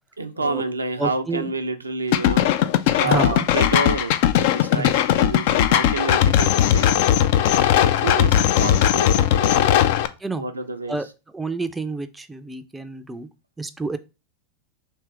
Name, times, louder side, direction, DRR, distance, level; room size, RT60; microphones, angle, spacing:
voice 1, 0.2-2.5 3.0-7.3 7.8-9.9 10.4-11.0, right 3 dB, 90° right, 7 dB, 0.4 m, -29 dB
voice 2, 1.0-1.5 3.0-3.5 4.7-5.0 10.2-10.5 10.9-11.1 11.3-13.3 13.6-14.0, right 3 dB, 10° right, 10 dB, 0.4 m, -29 dB
sound 1, 2.1-10.1, left 10 dB, 55° left, 0.3 m, -18 dB
3.3 x 3.0 x 4.6 m, 0.30 s
figure-of-eight pair, 90°, 0 cm